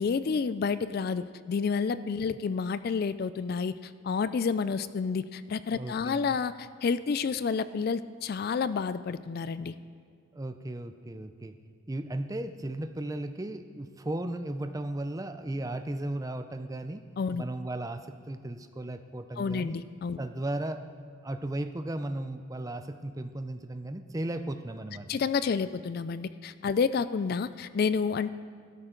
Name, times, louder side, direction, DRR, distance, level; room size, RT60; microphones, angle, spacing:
voice 1, 0.0-9.8 17.2-17.5 19.4-20.2 25.1-28.3, left 5 dB, 45° left, 14 dB, 0.3 m, -29 dB
voice 2, 5.7-6.4 10.3-11.5 11.9-17.0 17.4-19.8 20.2-20.8 21.2-25.1, right 1 dB, 15° right, 8 dB, 0.5 m, -35 dB
17.0 x 12.5 x 3.8 m, 2.2 s
head